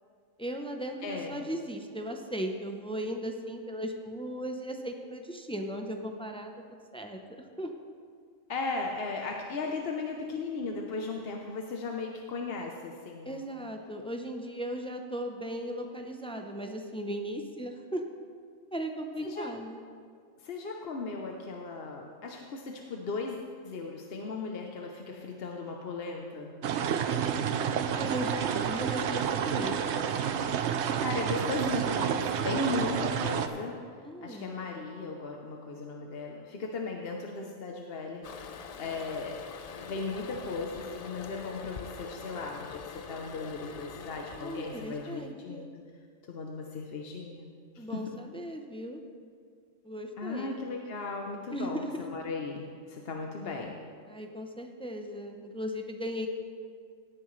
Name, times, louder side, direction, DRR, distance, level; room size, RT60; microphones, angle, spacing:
voice 1, 0.4-7.7 13.2-18.0 18.7-19.8 27.8-29.8 34.0-34.6 44.4-45.7 47.8-49.0 49.8-50.6 51.5-52.1 54.1-56.3, equal, 5° left, 4 dB, 0.4 m, -37 dB
voice 2, 1.0-1.4 8.5-13.4 19.2-19.5 20.4-26.5 31.0-33.8 34.2-38.3 38.8-39.4 39.8-45.7 46.3-47.5 47.7-48.2 50.2-53.8, left 3 dB, 55° left, 1 dB, 0.9 m, -36 dB
sound 1, 26.6-33.5, right 8 dB, 65° right, 0.9 m, -29 dB
Toilet flush, 38.2-45.3, left 6 dB, 85° left, 0.3 m, -44 dB
17.0 x 9.5 x 3.2 m, 2.1 s
omnidirectional pair, 1.4 m